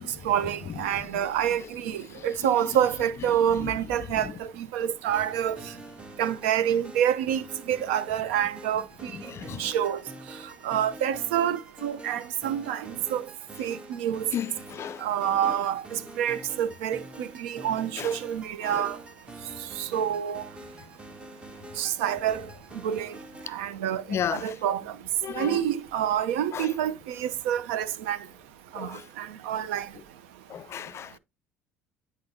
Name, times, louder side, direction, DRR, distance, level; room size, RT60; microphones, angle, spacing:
voice 1, 0.2-5.6 6.2-9.1 9.5-10.0 10.6-13.2 13.6-14.3 15.0-19.0 19.8-20.4 21.8-22.4 22.8-23.1 23.5-24.8 25.3-28.2 28.7-29.9, right 10 dB, 80° right, 0.7 m, -27 dB
sound 1, 5.1-23.5, right 1 dB, 15° right, 1.0 m, -46 dB
voice 2, 9.3-9.6 14.3-15.0 18.0-18.1 18.6-18.8 24.1-24.5 25.2-25.6 26.5-26.7 28.8-29.0 30.5-31.2, left 9 dB, 45° left, 0.4 m, -33 dB
9.5 x 4.0 x 2.7 m
hypercardioid pair, 70°, 6 cm